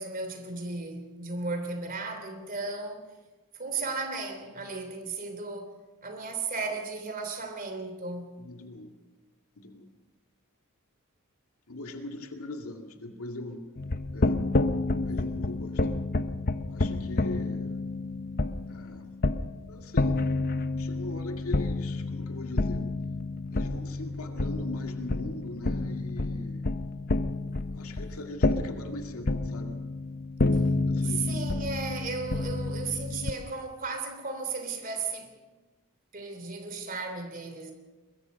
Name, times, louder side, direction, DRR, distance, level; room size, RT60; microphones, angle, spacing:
voice 1, 0.0-3.1 3.5-5.8 6.0-8.4 31.0-35.4 36.1-37.7, right 4 dB, 40° right, 3.1 m, -35 dB
voice 2, 8.4-8.9 9.6-9.9 11.7-13.6 14.1-16.0 16.7-17.8 18.7-19.1 19.7-20.3 20.8-22.9 23.5-26.7 27.7-29.7 30.8-31.5, left 1 dB, 75° left, 2.2 m, -40 dB
sound 1, 13.8-33.3, left 2 dB, 45° left, 0.8 m, -29 dB
22.5 x 22.0 x 5.3 m
head